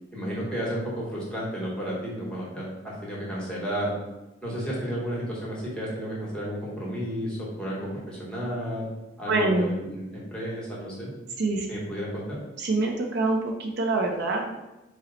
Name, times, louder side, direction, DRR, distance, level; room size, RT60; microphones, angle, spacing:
voice 1, 0.1-4.0 4.4-8.9 9.2-11.1 11.7-12.4, equal, 5° left, -5 dB, 1.0 m, -32 dB
voice 2, 9.2-9.8 11.4-11.7 12.6-14.6, right 2 dB, 60° right, 2 dB, 0.4 m, -25 dB
4.1 x 2.0 x 3.8 m, 1.0 s
head